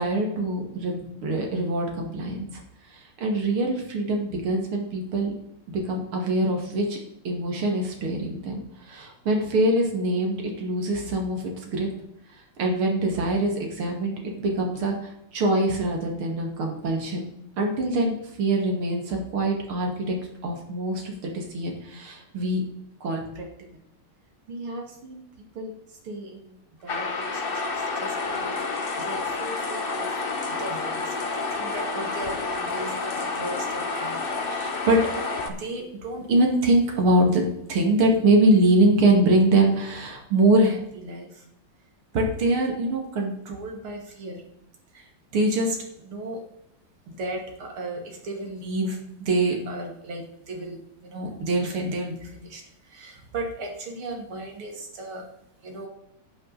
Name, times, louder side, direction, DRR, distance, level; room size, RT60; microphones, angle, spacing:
voice 1, 0.0-2.6 2.9-5.3 5.7-7.0 7.2-11.9 12.3-17.2 17.6-20.2 20.4-22.6 23.0-23.5 24.5-25.2 25.6-25.7 26.0-26.5 26.8-27.4 28.0-28.1 28.4-28.6 29.0-30.1 30.6-35.0 35.5-41.3 42.1-44.4 44.9-45.0 45.3-45.8 46.0-46.4 47.1-52.6 52.9-55.2 55.6-55.9, right 1 dB, 80° right, 1 dB, 3.0 m, -25 dB
sound 1, 26.9-35.5, left 3 dB, 35° left, 0.9 m, -29 dB
11.0 x 9.0 x 4.1 m, 0.82 s
omnidirectional pair, 2.3 m